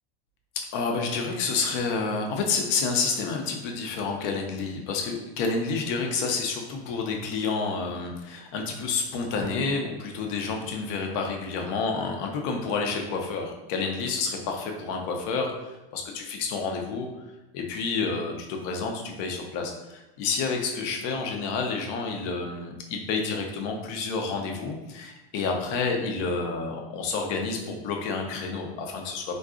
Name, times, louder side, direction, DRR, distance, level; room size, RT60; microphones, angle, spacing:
voice 1, 0.6-15.5 15.9-17.1 17.5-29.3, left 4 dB, 55° left, 2 dB, 0.6 m, -29 dB
3.7 x 2.3 x 2.4 m, 1.0 s
supercardioid pair, 135°, 31 cm